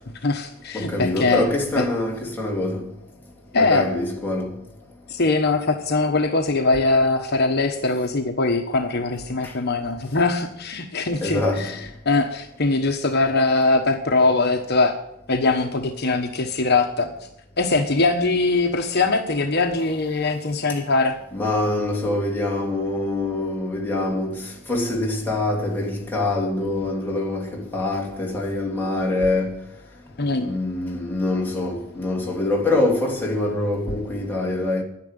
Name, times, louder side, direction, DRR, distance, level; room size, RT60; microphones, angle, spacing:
voice 1, 0.2-1.5 3.5-3.9 5.1-11.7 12.0-15.0 15.3-17.1 17.6-21.2 30.2-30.5, left 3 dB, 50° left, 1.3 m, -21 dB
voice 2, 0.7-2.9 3.6-4.5 9.4-9.5 11.2-11.7 21.3-29.6 30.4-34.8, left 2 dB, 10° left, 3.0 m, -24 dB
11.5 x 10.5 x 9.5 m
head